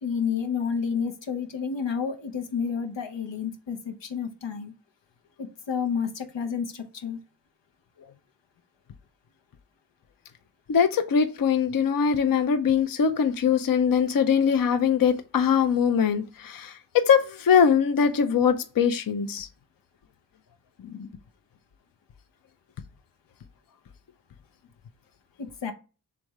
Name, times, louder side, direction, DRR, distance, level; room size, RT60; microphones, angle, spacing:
voice 1, 0.0-4.7 5.4-7.2 25.4-25.7, left 6 dB, 85° left, 0.8 m, -30 dB
voice 2, 10.7-16.7 17.1-19.5 20.9-21.1, left 7 dB, 50° left, 0.6 m, -22 dB
3.4 x 3.1 x 4.7 m
cardioid pair, 45°, 43 cm